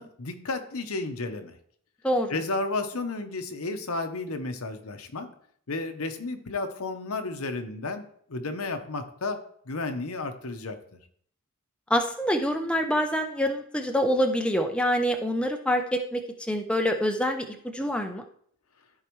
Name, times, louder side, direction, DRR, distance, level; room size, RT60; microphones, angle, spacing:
voice 1, 0.0-1.5 2.3-5.3 5.7-8.0 8.3-9.4 9.7-10.8, left 3 dB, 75° left, 7 dB, 1.0 m, -32 dB
voice 2, 2.0-2.3 11.9-16.2 16.5-18.2, equal, 5° left, 4 dB, 0.6 m, -26 dB
13.5 x 4.8 x 3.1 m, 0.63 s
head